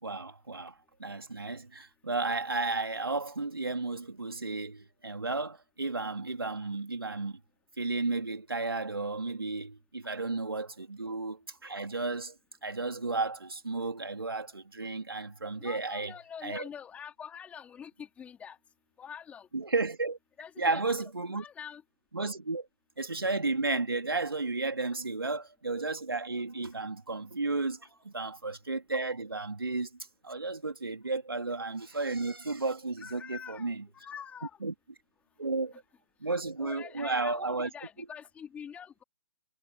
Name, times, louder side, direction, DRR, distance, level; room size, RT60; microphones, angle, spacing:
voice 1, 0.0-0.7 1.0-7.4 7.8-12.3 12.6-16.1 16.4-16.6 19.5-20.2 20.6-21.4 22.1-22.7 23.0-29.9 30.2-33.8 34.6-34.7 35.4-35.7 36.2-37.7, right 3 dB, 80° right, 3.1 m, -33 dB
voice 2, 15.6-18.6 19.0-19.5 20.4-20.8 21.3-21.8 33.0-34.6 35.7-35.8 36.2-39.0, left 7 dB, 10° left, 4.5 m, -45 dB
figure-of-eight pair, 135°, 12 cm